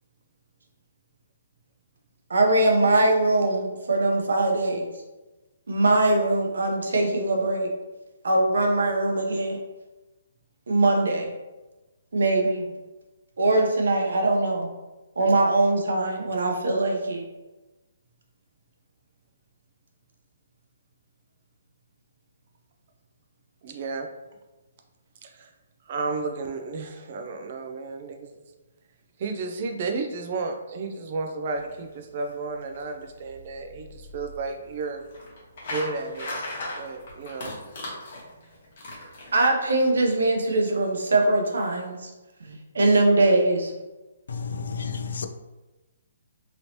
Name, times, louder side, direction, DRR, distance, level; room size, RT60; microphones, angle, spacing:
voice 1, 2.3-4.9 5.7-7.7 8.2-9.6 10.7-11.3 12.1-12.7 13.4-14.7 15.2-17.2 39.3-42.1 42.4-43.7, right 2 dB, 80° right, 0.7 m, -22 dB
voice 2, 23.6-24.1 25.2-25.5 25.8-28.4 29.2-35.1 35.7-36.3 36.7-37.5, right 3 dB, 35° right, 0.4 m, -32 dB
sound 1, 31.5-39.9, left 1 dB, 40° left, 1.1 m, -39 dB
voice 3, 44.3-45.3, left 5 dB, 65° left, 0.3 m, -31 dB
3.0 x 2.8 x 2.8 m
hypercardioid pair, 175°, 0 cm